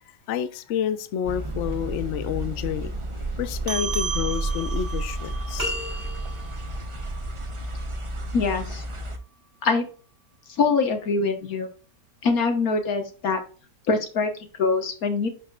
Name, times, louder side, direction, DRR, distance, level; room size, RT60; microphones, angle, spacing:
voice 1, 0.3-2.9 3.4-5.7, left 9 dB, 80° left, 0.6 m, -29 dB
sound 1, 1.2-9.2, right 1 dB, 45° right, 0.4 m, -31 dB
sound 2, 3.7-8.5, right 6 dB, 65° right, 1.6 m, -36 dB
sound 3, 5.6-6.7, left 1 dB, 15° right, 3.4 m, -32 dB
voice 2, 8.3-8.8 9.6-9.9 10.5-11.7 12.2-13.4 13.9-15.3, left 4 dB, 55° left, 1.7 m, -24 dB
11.0 x 5.2 x 2.4 m
omnidirectional pair, 2.0 m